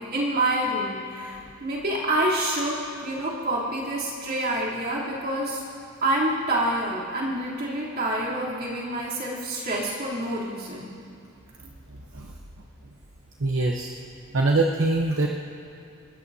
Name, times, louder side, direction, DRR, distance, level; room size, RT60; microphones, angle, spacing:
voice 1, 0.0-5.6 6.0-10.9, right 1 dB, 50° right, -6 dB, 3.3 m, -27 dB
voice 2, 11.9-12.3 13.4-13.9 14.3-15.3, right 2 dB, 65° right, 1 dB, 0.9 m, -24 dB
29.5 x 13.0 x 2.8 m, 2.5 s
head